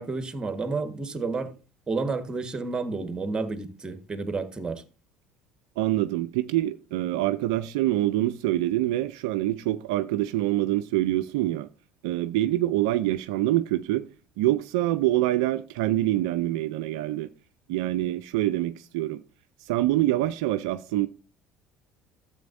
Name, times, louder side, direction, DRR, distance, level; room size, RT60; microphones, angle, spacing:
voice 1, 0.0-1.5 1.9-4.8, right 3 dB, 25° right, 1.4 m, -30 dB
voice 2, 5.8-11.7 12.0-14.1 14.4-17.3 17.7-19.2 19.6-21.1, right 15 dB, 75° right, 0.4 m, -25 dB
12.5 x 7.7 x 2.6 m
hypercardioid pair, 65°, 3 cm